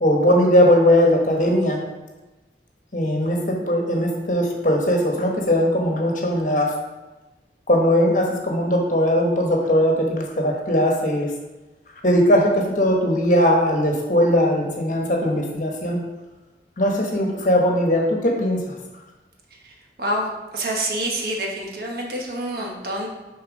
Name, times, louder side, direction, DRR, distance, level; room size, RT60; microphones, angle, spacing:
voice 1, 0.0-1.8 2.9-6.7 7.7-11.3 12.0-16.0 16.8-18.7, equal, 45° left, 1 dB, 1.2 m, -19 dB
voice 2, 20.0-23.1, right 1 dB, 55° right, -1 dB, 1.2 m, -27 dB
6.4 x 4.4 x 5.2 m, 1.1 s
head